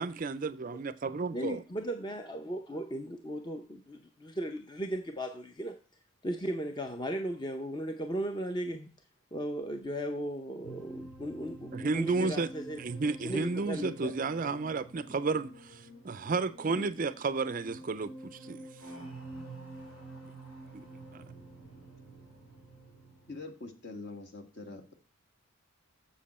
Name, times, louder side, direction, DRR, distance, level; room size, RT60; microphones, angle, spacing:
voice 1, 0.0-1.6 11.7-12.5 12.8-15.5 16.0-18.1 18.5-18.6 20.7-20.8, right 4 dB, 40° right, 0.4 m, -32 dB
voice 2, 1.3-5.7 6.2-8.9 9.3-12.8 13.2-14.1 14.4-14.5 16.7-16.9, equal, 20° left, 0.6 m, -36 dB
sound 1, 10.6-23.4, right 2 dB, 75° left, 3.1 m, -48 dB
voice 3, 23.3-24.9, left 3 dB, 50° left, 1.5 m, -44 dB
7.4 x 7.4 x 4.2 m
head